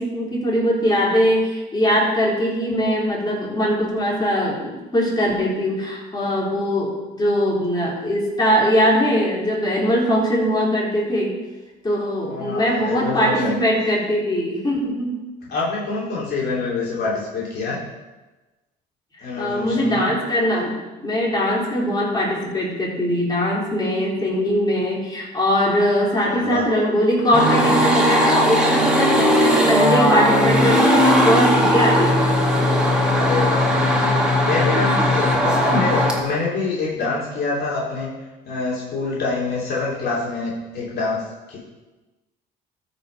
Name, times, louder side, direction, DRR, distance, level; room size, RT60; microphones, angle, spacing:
voice 1, 0.0-11.3 11.8-15.2 19.2-32.4, equal, 20° left, -5 dB, 3.9 m, -21 dB
voice 2, 12.3-13.6 15.5-17.8 19.2-20.0 26.1-26.7 33.1-34.1 34.4-38.1 38.5-41.2 41.5-41.6, left 3 dB, 55° left, -6 dB, 3.1 m, -26 dB
sound 1, 27.3-36.2, equal, 5° right, 2.3 m, -18 dB
13.5 x 5.4 x 5.2 m, 1.2 s
supercardioid pair, 85°, 20 cm